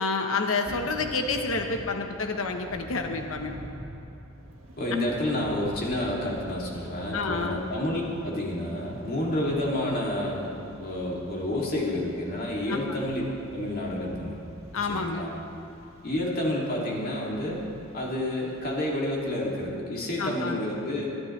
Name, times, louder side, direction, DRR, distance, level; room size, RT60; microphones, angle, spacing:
voice 1, 0.0-3.5 7.1-7.6 12.7-13.0 14.7-15.3 20.2-20.6, left 4 dB, 75° left, 4 dB, 1.0 m, -29 dB
Thunder / Rain, 0.6-19.7, equal, 75° right, 1.6 m, -46 dB
voice 2, 4.8-10.5 10.8-13.2 13.5-14.4 14.9-15.3 16.0-17.6 17.9-21.1, left 1 dB, 45° left, -3 dB, 2.6 m, -29 dB
22.0 x 12.0 x 3.3 m, 2.8 s
head